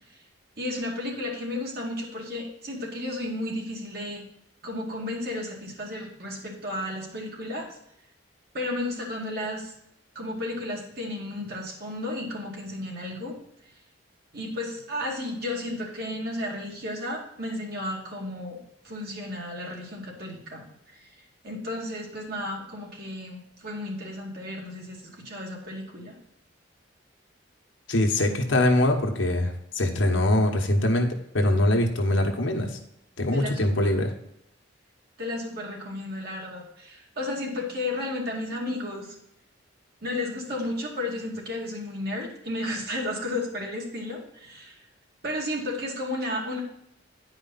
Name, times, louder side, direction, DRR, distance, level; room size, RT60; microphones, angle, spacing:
voice 1, 0.6-4.2 4.6-7.8 8.5-9.7 10.1-13.4 14.3-26.2 33.3-34.1 35.2-39.2 40.0-44.9 45.2-46.6, left 1 dB, 50° right, -1 dB, 2.3 m, -33 dB
voice 2, 27.9-31.1 31.3-32.7 33.2-34.1, left 1 dB, 75° left, 2 dB, 1.4 m, -23 dB
10.5 x 5.0 x 4.1 m, 0.78 s
head